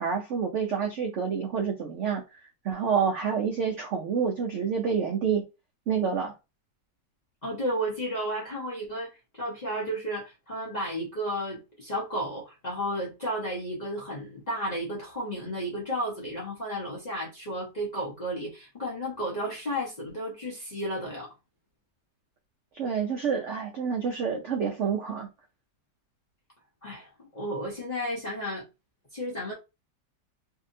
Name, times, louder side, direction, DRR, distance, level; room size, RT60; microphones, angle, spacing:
voice 1, 0.0-2.4 2.6-5.4 5.9-6.3 22.7-25.3, right 6 dB, 80° right, 0.6 m, -28 dB
voice 2, 7.4-21.3 26.8-28.7 29.1-29.5, equal, 75° left, 0.3 m, -33 dB
2.7 x 2.7 x 2.6 m
omnidirectional pair, 1.9 m